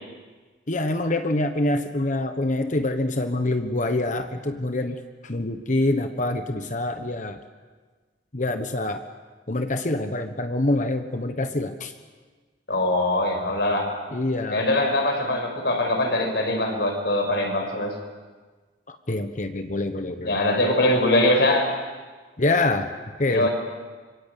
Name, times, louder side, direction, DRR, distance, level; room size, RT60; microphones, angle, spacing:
voice 1, 0.7-7.4 8.3-9.0 9.5-11.9 14.1-14.6 18.9-20.4 22.4-22.9 23.2-23.5, left 2 dB, 45° left, 7 dB, 1.3 m, -25 dB
voice 2, 12.7-14.0 14.5-17.9 20.2-21.7 23.3-23.5, left 1 dB, 70° left, 4 dB, 5.8 m, -22 dB
26.0 x 24.0 x 8.5 m, 1.4 s
head